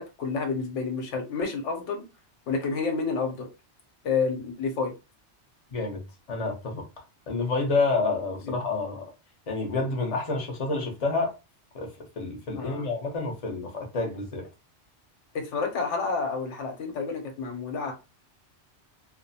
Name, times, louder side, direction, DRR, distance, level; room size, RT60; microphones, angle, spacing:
voice 1, 0.0-2.1 2.5-3.5 4.0-4.9 8.5-8.6 12.6-12.9 15.3-17.9, left 4 dB, 90° left, 1.0 m, -29 dB
voice 2, 5.7-6.0 6.3-6.9 7.3-9.0 9.5-11.4 11.7-14.5, left 3 dB, 35° left, 0.7 m, -29 dB
2.6 x 2.0 x 2.7 m
omnidirectional pair, 1.2 m